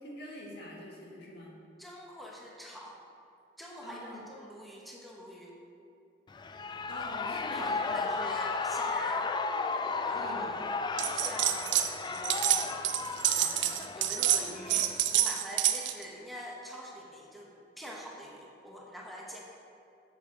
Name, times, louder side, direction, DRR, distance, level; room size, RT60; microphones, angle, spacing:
voice 1, 0.0-1.6 3.8-4.2 6.9-8.2 10.1-10.5, left 1 dB, 65° left, -2 dB, 1.8 m, -45 dB
voice 2, 1.8-3.0 3.6-5.5 7.5-9.3 10.0-10.6 11.1-13.0 13.3-19.4, equal, ahead, -2 dB, 0.9 m, -44 dB
Shout / Cheering, 6.3-15.2, left 4 dB, 25° left, 0.3 m, -34 dB
sound 1, 11.0-11.9 12.1-16.0, right 11 dB, 75° right, 0.5 m, -28 dB
8.0 x 7.4 x 5.0 m, 2.6 s
head